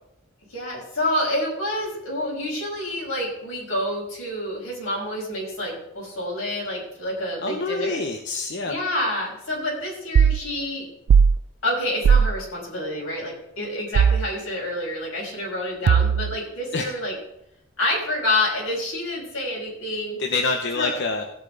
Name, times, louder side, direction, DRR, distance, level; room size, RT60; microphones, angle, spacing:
voice 1, 0.5-8.0 8.6-10.8 11.6-17.1 17.8-20.2 20.7-21.0, left 1 dB, 80° left, -3 dB, 5.8 m, -28 dB
voice 2, 7.4-8.8 16.7-16.9 20.2-21.2, left 3 dB, 55° left, 4 dB, 0.9 m, -26 dB
sound 1, 10.2-10.4 11.1-11.4 12.0-12.3 14.0-14.3 15.9-16.4, right 7 dB, 85° right, 0.3 m, -16 dB
16.5 x 8.4 x 4.0 m, 0.80 s
head